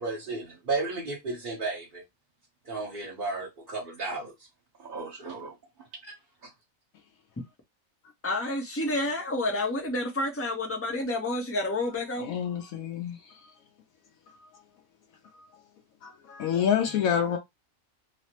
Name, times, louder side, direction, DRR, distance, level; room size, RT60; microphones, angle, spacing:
voice 1, 0.0-2.0 2.6-4.3 4.8-5.5 6.0-6.1, right 3 dB, 40° right, 1.0 m, -34 dB
voice 2, 8.2-12.3, left 2 dB, 15° left, 0.5 m, -29 dB
voice 3, 12.2-13.2 16.0-17.4, left 8 dB, 80° left, 1.0 m, -27 dB
3.2 x 2.1 x 2.8 m
omnidirectional pair, 1.4 m